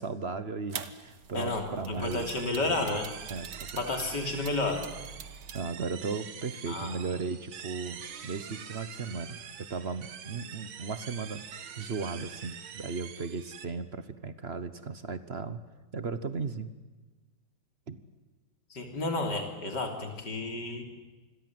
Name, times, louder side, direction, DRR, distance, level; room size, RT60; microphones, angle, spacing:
voice 1, 0.0-2.3 2.6-3.0 3.3-3.8 5.5-11.4 11.8-15.6 15.9-16.7 17.9-18.0, right 4 dB, 40° right, 12 dB, 0.9 m, -36 dB
sound 1, 0.7-5.6, right 7 dB, 60° right, 1.8 m, -45 dB
voice 2, 1.3-3.1 3.8-4.9 6.7-7.0 18.7-20.8, left 2 dB, 55° left, 4 dB, 3.9 m, -31 dB
sound 2, 2.0-13.6, right 8 dB, 90° right, 2.2 m, -45 dB
27.5 x 21.5 x 7.8 m, 1.2 s
omnidirectional pair, 2.2 m